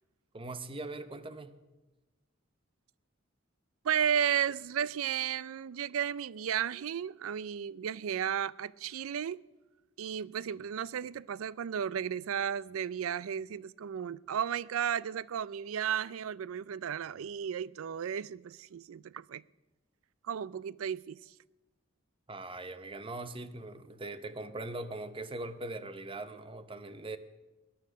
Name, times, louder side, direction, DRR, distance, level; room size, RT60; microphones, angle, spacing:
voice 1, 0.3-1.5 22.3-27.2, right 2 dB, 25° right, 0.8 m, -41 dB
voice 2, 3.8-9.4 10.0-19.4 20.2-21.3, right 8 dB, 85° right, 0.4 m, -34 dB
20.0 x 10.5 x 6.2 m
head